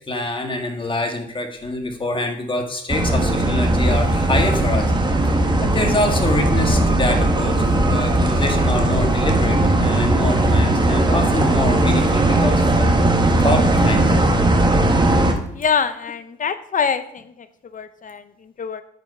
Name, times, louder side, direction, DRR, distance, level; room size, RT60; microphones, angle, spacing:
voice 1, 0.1-4.9 5.2-5.4 5.6-12.9 13.4-14.3, left 1 dB, 25° left, 4 dB, 1.8 m, -25 dB
sound 1, 2.9-15.3, right 1 dB, 20° right, 1.4 m, -18 dB
voice 2, 15.5-18.8, left 6 dB, 40° left, 12 dB, 0.7 m, -25 dB
8.9 x 5.4 x 5.7 m, 0.74 s
cardioid pair, 90°, 20 cm